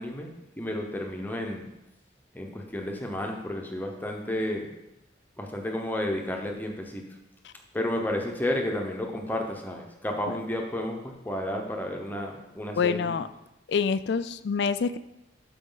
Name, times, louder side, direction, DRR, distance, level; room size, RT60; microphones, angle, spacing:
voice 1, 0.0-1.7 2.3-4.7 5.4-7.0 7.7-13.2, left 1 dB, 10° left, 1 dB, 0.8 m, -32 dB
voice 2, 12.8-13.3 13.7-15.0, left 5 dB, 60° left, 13 dB, 0.3 m, -26 dB
12.5 x 4.9 x 3.9 m, 0.91 s
head